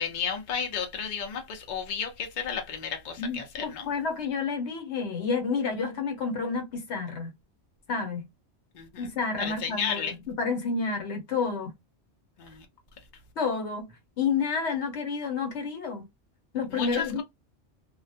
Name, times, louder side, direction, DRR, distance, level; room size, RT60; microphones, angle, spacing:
voice 1, 0.0-3.9 8.7-9.1 9.4-10.1 12.4-12.6 16.7-17.2, left 7 dB, 50° left, 0.7 m, -33 dB
voice 2, 3.2-7.3 7.9-8.3 9.0-11.7 13.4-13.9 14.2-16.1 16.5-17.2, left 5 dB, 80° left, 1.1 m, -30 dB
2.3 x 2.1 x 2.6 m
omnidirectional pair, 1.1 m